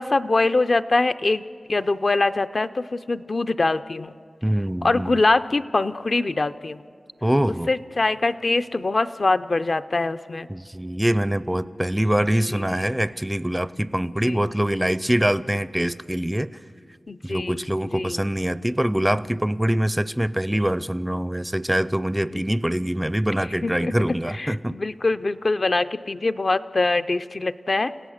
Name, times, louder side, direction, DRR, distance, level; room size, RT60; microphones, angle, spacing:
voice 1, 0.0-4.1 4.8-6.8 7.7-10.5 12.5-12.6 14.2-14.5 17.1-18.2 22.3-22.4 23.6-23.9 24.3-27.9, left 3 dB, 45° left, 10 dB, 0.5 m, -23 dB
voice 2, 4.4-5.2 7.2-7.7 10.5-16.5 17.2-24.8, right 1 dB, 10° right, 15 dB, 0.4 m, -24 dB
29.5 x 17.0 x 6.5 m, 2.3 s
wide cardioid pair, 100°, 0 cm